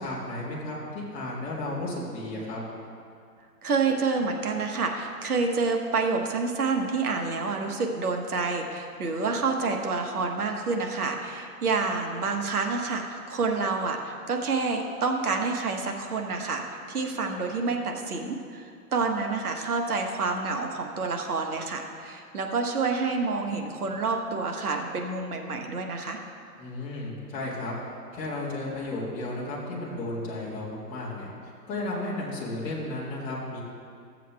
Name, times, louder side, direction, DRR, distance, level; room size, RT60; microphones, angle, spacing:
voice 1, 0.0-2.6 26.6-27.7 28.1-31.3 31.7-33.6, left 2 dB, 15° left, -7 dB, 2.0 m, -33 dB
voice 2, 3.6-26.2, right 4 dB, 65° right, 3 dB, 1.3 m, -28 dB
14.5 x 7.6 x 3.4 m, 2.3 s
hypercardioid pair, 145°, 48 cm